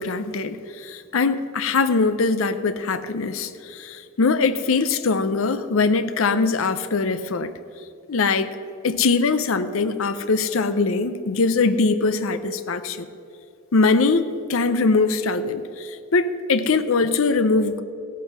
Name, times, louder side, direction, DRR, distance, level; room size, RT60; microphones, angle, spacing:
voice 1, 0.0-7.5 8.1-8.6 8.8-13.1 13.7-17.8, left 4 dB, 75° left, 11 dB, 0.6 m, -22 dB
15.5 x 8.2 x 6.1 m, 2.6 s
head